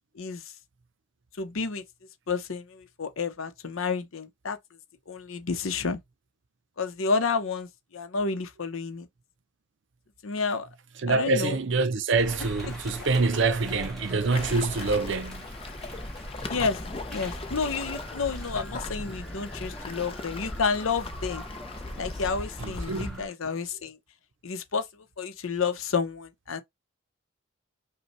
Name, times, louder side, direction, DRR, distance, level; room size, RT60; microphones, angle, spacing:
voice 1, 0.1-0.5 1.4-1.8 2.3-4.6 5.1-6.0 6.8-9.1 10.2-10.7 11.1-11.6 12.7-13.1 16.5-16.8 17.1-21.4 22.0-24.0 24.4-26.6, left 5 dB, 85° left, 0.7 m, -30 dB
voice 2, 11.0-15.5 22.6-23.3, right 3 dB, 60° right, 0.6 m, -26 dB
sound 1, 12.1-23.3, equal, ahead, 1.6 m, -41 dB
Waves surf, 14.3-23.1, left 3 dB, 30° left, 0.5 m, -39 dB
5.2 x 2.2 x 3.0 m
head